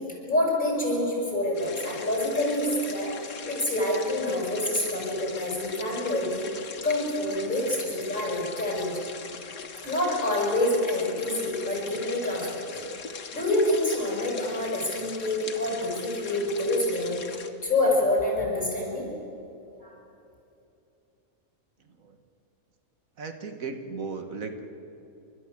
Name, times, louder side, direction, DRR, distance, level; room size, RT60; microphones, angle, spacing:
voice 1, 0.2-3.1 3.5-6.4 6.8-9.0 9.8-12.8 13.3-17.2 17.6-19.1 19.8-19.9, left 1 dB, 35° left, -3 dB, 7.0 m, -27 dB
sound 1, 1.5-17.5, left 6 dB, 85° left, 1.8 m, -41 dB
voice 2, 21.8-22.2 23.2-24.6, right 4 dB, 70° right, 7 dB, 1.7 m, -36 dB
30.0 x 13.5 x 8.4 m, 2.8 s
omnidirectional pair, 1.5 m